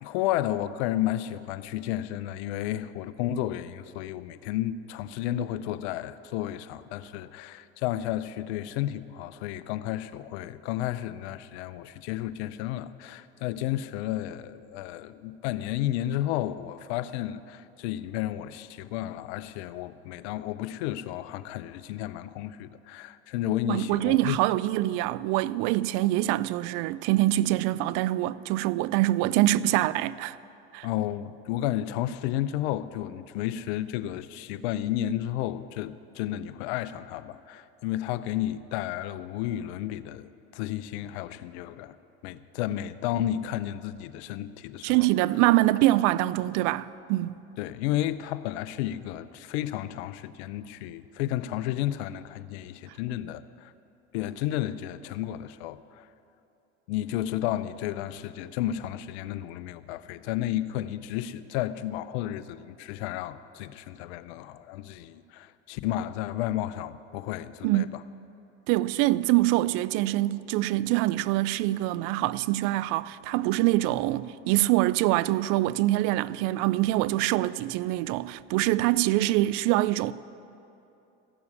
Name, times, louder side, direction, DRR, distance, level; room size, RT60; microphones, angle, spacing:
voice 1, 0.0-24.4 30.8-42.0 42.2-45.0 47.6-53.7 54.1-56.1 56.9-68.0, left 13 dB, 75° left, 0.6 m, -32 dB
voice 2, 23.7-30.4 30.7-30.9 44.8-47.3 67.6-67.9 68.7-80.1, right 16 dB, 65° right, 0.5 m, -24 dB
15.0 x 7.0 x 9.6 m
hypercardioid pair, 75°, 33 cm